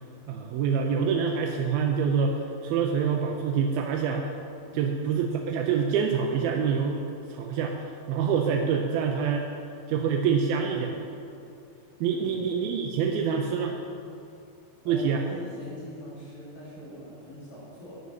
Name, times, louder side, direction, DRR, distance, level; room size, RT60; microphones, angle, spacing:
voice 1, 0.3-4.3 4.7-7.0 7.3-9.5 9.9-11.1 12.0-13.8 14.9-15.2, right 6 dB, 80° right, 2 dB, 2.3 m, -26 dB
voice 2, 4.7-5.0 12.1-12.4 14.3-14.4 14.8-18.0, equal, 55° left, -7 dB, 4.4 m, -43 dB
9.5 x 8.1 x 6.3 m, 2.6 s
omnidirectional pair, 4.7 m